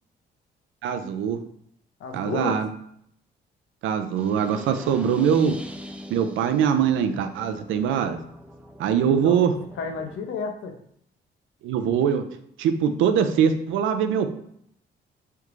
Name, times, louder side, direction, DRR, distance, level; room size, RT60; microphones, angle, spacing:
voice 1, 0.8-1.4 2.1-2.7 3.8-5.5 6.1-8.2 8.8-9.5 11.6-12.2 12.6-14.3, right 8 dB, 80° right, 8 dB, 0.4 m, -22 dB
voice 2, 2.0-2.6 9.0-10.7, left 4 dB, 75° left, 4 dB, 0.6 m, -32 dB
sound 1, 4.2-10.2, equal, 5° right, 0.3 m, -43 dB
3.3 x 2.4 x 3.0 m, 0.69 s
cardioid pair, 90°, 20 cm